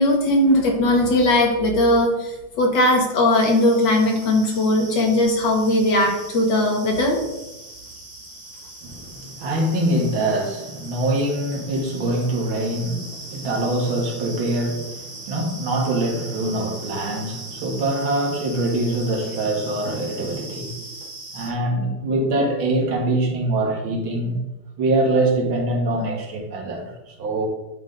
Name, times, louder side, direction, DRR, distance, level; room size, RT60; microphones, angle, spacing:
voice 1, 0.0-2.3 2.6-7.2, left 1 dB, 65° left, 0 dB, 2.0 m, -18 dB
sound 1, 3.3-21.5, right 2 dB, 25° right, 1.2 m, -40 dB
voice 2, 8.8-20.8 21.3-24.4 24.8-27.5, right 1 dB, 90° right, 0 dB, 2.2 m, -24 dB
10.0 x 5.7 x 2.6 m, 0.99 s
omnidirectional pair, 2.1 m